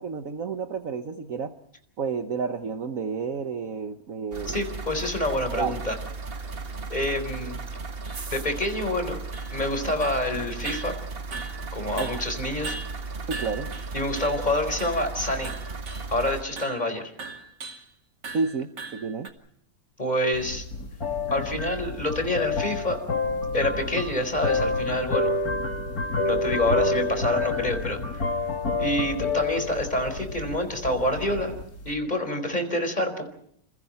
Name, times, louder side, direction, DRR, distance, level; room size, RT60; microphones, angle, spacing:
voice 1, 0.0-1.5 2.0-4.6 5.5-5.8 12.0-12.1 13.3-13.7 18.3-19.3, right 5 dB, 55° right, 7 dB, 1.5 m, -30 dB
sound 1, 4.3-16.4, right 4 dB, 35° right, 1.6 m, -36 dB
voice 2, 4.5-5.9 6.9-7.6 8.3-9.2 9.5-10.9 11.7-12.7 13.9-15.5 16.1-17.0 20.0-20.6 21.3-23.0 23.5-25.3 26.2-28.3 28.8-31.5 31.8-33.3, left 1 dB, 25° left, 7 dB, 4.6 m, -27 dB
sound 2, 5.8-5.9 6.3-6.4 7.0-7.1 7.4-7.5 8.1-8.3 8.7-9.8 10.0-10.3 10.7-11.7 12.0-14.5 14.8-15.1 15.4-16.1 16.6-16.9 17.2-17.9 18.2-19.3, right 4 dB, 85° right, 3.2 m, -40 dB
sound 3, 20.3-31.9, left 3 dB, 60° left, 3.2 m, -28 dB
28.5 x 28.5 x 4.4 m, 0.69 s
omnidirectional pair, 1.8 m